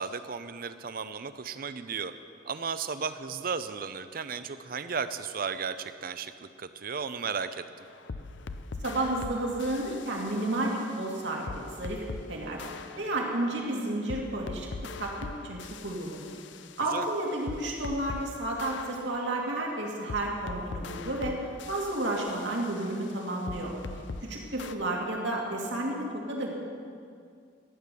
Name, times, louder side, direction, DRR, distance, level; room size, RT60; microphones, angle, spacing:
voice 1, 0.0-2.1 2.4-7.6 16.9-17.1, right 5 dB, 55° right, 12 dB, 0.6 m, -34 dB
sound 1, 7.8-12.3 12.6-18.3 18.6-24.3 24.6-24.7, left 3 dB, 90° left, 0.6 m, -42 dB
voice 2, 8.8-12.6 13.0-14.7 15.0-16.3 16.8-21.4 21.7-23.7 24.2-26.6, right 1 dB, 80° right, -1 dB, 2.5 m, -31 dB
14.5 x 9.4 x 6.9 m, 2.3 s
head